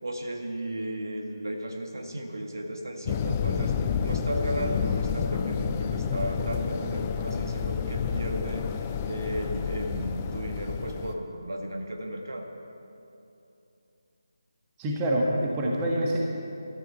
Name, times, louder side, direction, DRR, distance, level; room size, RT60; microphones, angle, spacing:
voice 1, 0.0-12.5, right 1 dB, 60° right, 3 dB, 1.7 m, -34 dB
sound 1, 3.0-11.1, left 7 dB, 20° left, 0.5 m, -30 dB
voice 2, 14.8-16.2, right 1 dB, 15° right, -3 dB, 1.5 m, -26 dB
23.0 x 13.0 x 4.4 m, 2.8 s
figure-of-eight pair, 155°, 2 cm